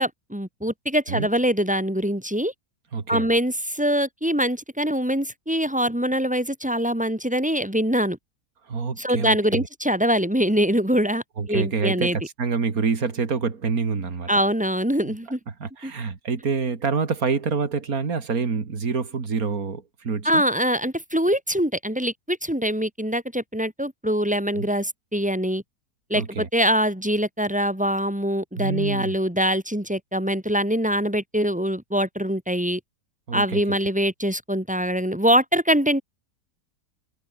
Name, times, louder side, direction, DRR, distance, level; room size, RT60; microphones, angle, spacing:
voice 1, 0.0-2.5 3.1-8.2 9.0-11.2 11.5-12.2 14.3-15.4 15.8-15.9 20.2-25.6 26.1-32.8 33.3-36.0, equal, 5° right, 2.3 m, -23 dB
voice 2, 2.9-3.3 8.7-9.7 11.4-14.3 15.0-15.1 15.5-20.4 24.6-24.7 26.1-26.5 28.6-29.2 33.3-33.6, right 5 dB, 60° right, 2.9 m, -27 dB
omnidirectional pair, 1.8 m